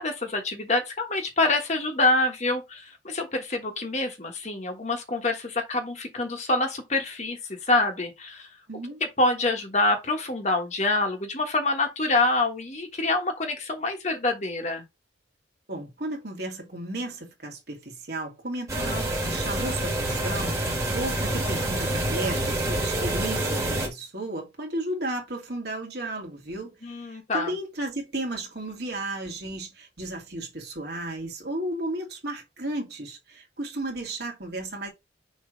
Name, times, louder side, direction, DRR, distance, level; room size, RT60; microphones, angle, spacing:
voice 1, 0.0-8.5 9.0-14.8 26.8-27.5, left 2 dB, 35° left, 1.3 m, -26 dB
voice 2, 8.7-9.0 15.7-34.9, right 1 dB, 55° right, 2.5 m, -34 dB
sound 1, 18.7-23.9, right 1 dB, 15° right, 1.7 m, -27 dB
6.4 x 3.2 x 5.1 m
head